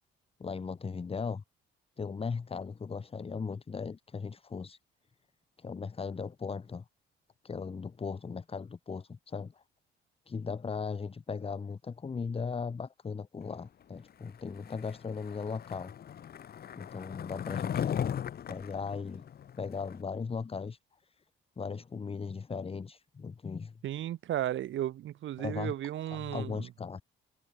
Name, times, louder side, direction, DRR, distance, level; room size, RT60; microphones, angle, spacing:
voice 1, 0.4-1.4 2.0-4.8 5.6-6.8 7.4-9.6 10.3-15.9 16.7-18.2 18.5-19.2 19.6-20.8 21.6-23.7 25.4-25.7 26.1-27.0, left 5 dB, 30° left, 1.1 m, -37 dB
Skateboard, 14.6-20.0, left 9 dB, 50° left, 1.0 m, -37 dB
voice 2, 23.8-26.7, right 12 dB, 75° right, 2.3 m, -34 dB
cardioid pair, 90°, 20 cm